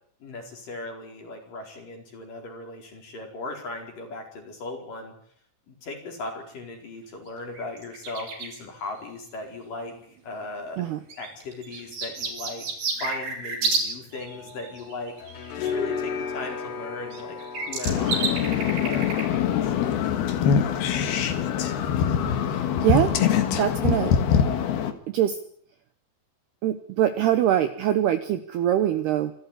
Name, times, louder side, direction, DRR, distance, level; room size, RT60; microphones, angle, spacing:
voice 1, 0.2-5.1 5.7-9.9 10.2-10.9 11.2-12.7 12.9-15.1 15.5-19.7, left 3 dB, 45° left, 3 dB, 5.9 m, -37 dB
sound 1, 7.3-7.4 7.5-8.6 9.9-10.0 11.1-13.9 14.1-15.7 16.8-16.9 17.1-19.2 19.8-19.9, right 4 dB, 55° right, 7.1 m, -31 dB
sound 2, 14.1-19.7, left 6 dB, 75° left, 5.1 m, -35 dB
sound 3, 17.8-24.9, left 8 dB, 60° left, 3.3 m, -23 dB
voice 2, 22.5-23.1 23.5-24.1 25.1-25.4 26.6-29.3, right 11 dB, 75° right, 10 dB, 2.6 m, -23 dB
27.0 x 13.0 x 9.9 m, 0.63 s
omnidirectional pair, 5.8 m